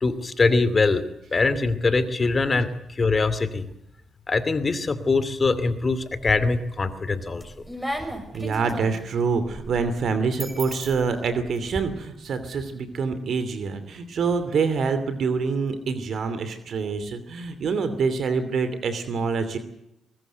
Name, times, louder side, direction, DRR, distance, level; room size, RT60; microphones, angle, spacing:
voice 1, 0.0-3.7 4.3-7.6, left 3 dB, 35° left, 13 dB, 2.6 m, -23 dB
sound 1, 6.0-6.7 7.2-11.8, equal, 5° right, 6.1 m, -36 dB
voice 2, 8.3-19.6, right 5 dB, 60° right, 10 dB, 2.7 m, -26 dB
22.5 x 19.0 x 8.0 m, 0.83 s
hypercardioid pair, 45°, 0 cm